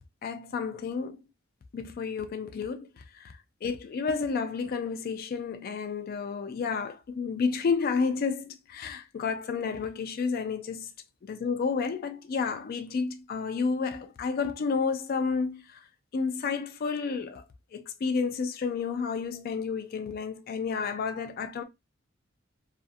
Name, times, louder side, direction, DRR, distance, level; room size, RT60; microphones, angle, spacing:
voice 1, 0.2-1.2 1.7-2.9 3.1-3.3 3.6-10.9 11.2-15.8 16.1-17.4 17.7-21.6, left 5 dB, 50° left, 0.3 m, -31 dB
2.5 x 2.5 x 2.4 m
head